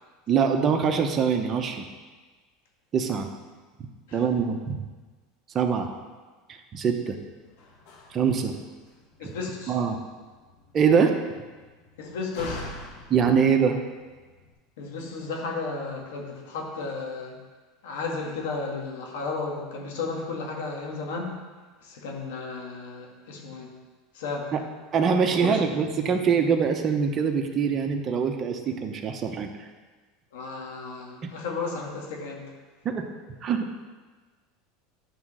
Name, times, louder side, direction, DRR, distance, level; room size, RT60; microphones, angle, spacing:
voice 1, 0.3-1.9 2.9-3.3 4.1-4.8 5.5-5.9 6.5-7.2 8.1-8.5 9.7-10.0 10.7-11.1 13.1-13.8 24.5-24.6 24.9-29.7 31.2-31.3 32.8-33.1 33.4-33.8, right 6 dB, 30° right, 4 dB, 0.9 m, -23 dB
Slam, 6.9-14.5, left 2 dB, 70° left, 1.7 m, -46 dB
voice 2, 9.2-9.8 12.0-12.6 14.8-17.4 17.8-21.4 21.8-23.7 24.1-24.5 25.2-25.6 30.3-32.5, left 4 dB, 85° left, 0 dB, 1.9 m, -33 dB
10.5 x 3.7 x 6.2 m, 1.4 s
supercardioid pair, 130°, 0 cm